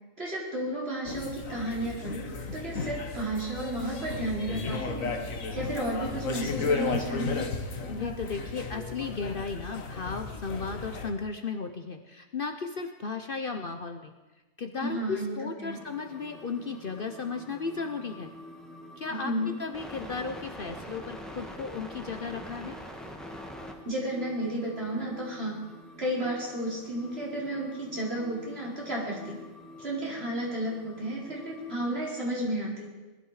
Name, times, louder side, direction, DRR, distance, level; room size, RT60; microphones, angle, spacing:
voice 1, 0.2-2.3 2.5-5.1 5.5-7.5 14.8-15.8 19.2-19.5 23.8-25.6 26.0-29.4 29.8-32.9, right 1 dB, 50° right, -5 dB, 4.5 m, -32 dB
sound 1, 1.0-11.1, left 4 dB, 85° left, 1.7 m, -34 dB
voice 2, 7.9-14.1 14.6-18.3 19.0-22.8, left 4 dB, 50° left, 5 dB, 0.9 m, -35 dB
sound 2, 15.7-32.1, left 1 dB, ahead, 1.7 m, -46 dB
20.0 x 13.0 x 4.9 m, 1.2 s
omnidirectional pair, 1.4 m